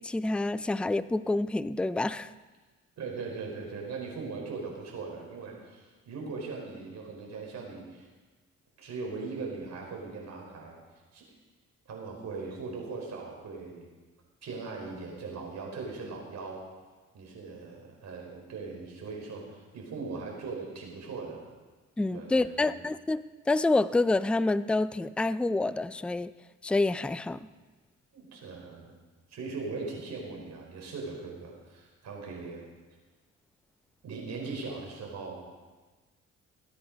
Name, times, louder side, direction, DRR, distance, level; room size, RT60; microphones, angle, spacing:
voice 1, 0.0-2.3 22.0-26.3 26.6-27.4, left 2 dB, 5° left, 15 dB, 0.4 m, -27 dB
voice 2, 3.0-8.1 8.8-10.7 11.1-11.2 11.9-13.9 14.4-16.6 17.1-21.4 22.1-22.8 28.1-28.9 29.3-32.6 34.0-35.4, right 4 dB, 60° right, -1 dB, 4.8 m, -39 dB
17.5 x 9.9 x 5.2 m, 1.3 s
cardioid pair, 90°, 30 cm